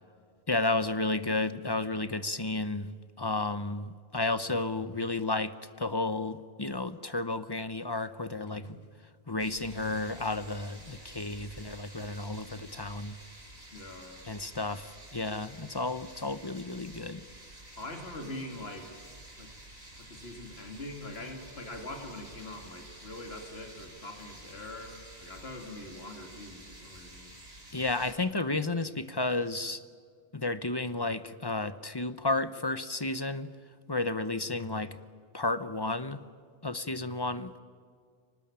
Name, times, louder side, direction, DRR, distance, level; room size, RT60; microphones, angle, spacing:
voice 1, 0.5-2.9 3.2-8.7 9.3-13.1 14.3-17.2 27.7-29.8 30.3-33.5 33.9-34.9 35.3-36.2 36.6-37.5, left 2 dB, 25° left, 13 dB, 0.8 m, -32 dB
sound 1, 9.4-28.1, right 1 dB, 80° right, 6.3 m, -50 dB
voice 2, 13.7-14.3 17.8-19.0 19.4-19.5 20.0-27.4, left 1 dB, 75° left, 3 dB, 2.9 m, -43 dB
24.5 x 19.5 x 8.8 m, 2.1 s
omnidirectional pair, 1.1 m